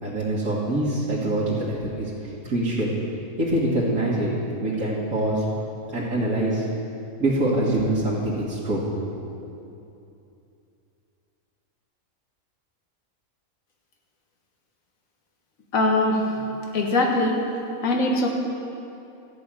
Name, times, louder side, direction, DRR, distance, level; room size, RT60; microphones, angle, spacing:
voice 1, 0.0-2.1 2.4-2.9 3.4-4.3 4.6-5.4 5.9-6.7 7.2-9.2, right 1 dB, 75° right, -8 dB, 2.1 m, -24 dB
voice 2, 15.7-16.4 16.7-17.4 17.8-18.3, left 2 dB, 70° left, 1 dB, 1.8 m, -21 dB
13.5 x 5.5 x 8.8 m, 2.7 s
omnidirectional pair, 1.5 m